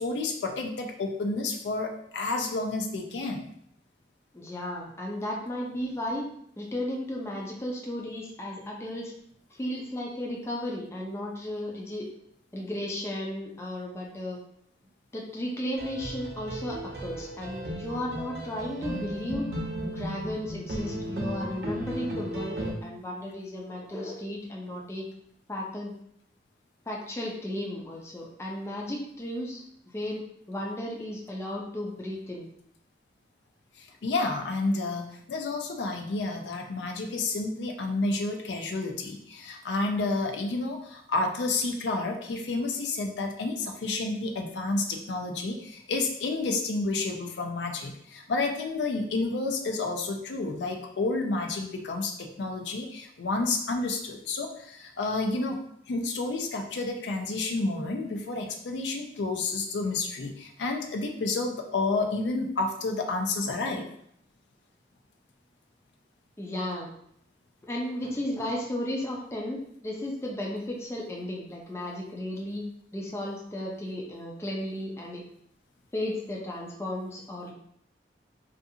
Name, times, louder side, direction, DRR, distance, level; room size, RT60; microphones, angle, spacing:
voice 1, 0.0-3.5 33.8-55.6 55.9-63.9, left 3 dB, 80° left, 3 dB, 0.4 m, -30 dB
voice 2, 4.3-6.2 6.6-9.1 9.5-12.1 12.5-14.4 15.1-19.5 19.8-25.1 25.5-25.9 26.9-32.5 63.5-63.6 66.4-66.9 67.6-72.7 72.9-75.2 75.9-77.5, left 1 dB, 15° left, -2 dB, 0.4 m, -34 dB
sound 1, 15.8-22.7, equal, 65° right, 0.6 m, -35 dB
2.5 x 2.4 x 2.7 m, 0.69 s
head